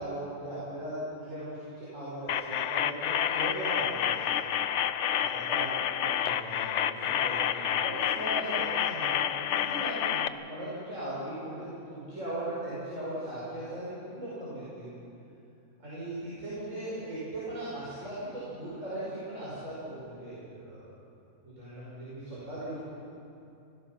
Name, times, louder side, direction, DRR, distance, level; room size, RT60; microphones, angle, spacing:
voice 1, 0.0-4.4 5.2-5.7 6.0-14.9 15.8-20.9 21.4-22.8, right 1 dB, 75° right, -9 dB, 6.3 m, -38 dB
sound 1, 2.3-10.3, left 9 dB, 70° left, 0.9 m, -29 dB
26.5 x 20.0 x 5.9 m, 2.7 s
omnidirectional pair, 1.3 m